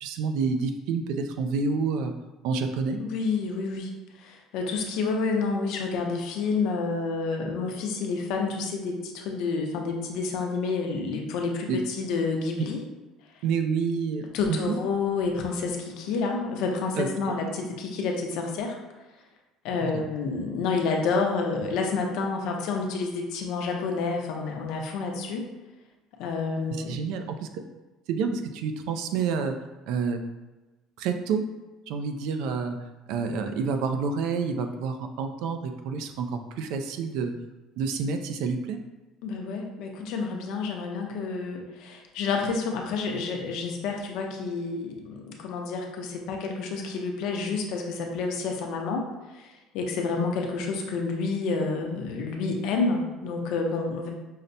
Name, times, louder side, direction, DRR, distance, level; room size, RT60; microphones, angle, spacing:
voice 1, 0.0-2.1 2.4-3.0 11.7-11.8 12.6-12.7 13.4-14.7 17.0-17.1 19.8-20.0 26.9-27.5 28.1-29.6 29.9-30.2 31.0-31.4 31.9-32.8 33.1-37.3 37.8-38.8, right 5 dB, 65° right, 6 dB, 0.3 m, -28 dB
voice 2, 3.0-3.9 4.2-12.8 14.3-18.8 19.6-25.4 26.2-27.0 39.2-49.0 49.3-54.1, left 4 dB, 60° left, 2 dB, 0.6 m, -29 dB
5.5 x 2.1 x 2.6 m, 1.1 s
cardioid pair, 180°, 0 cm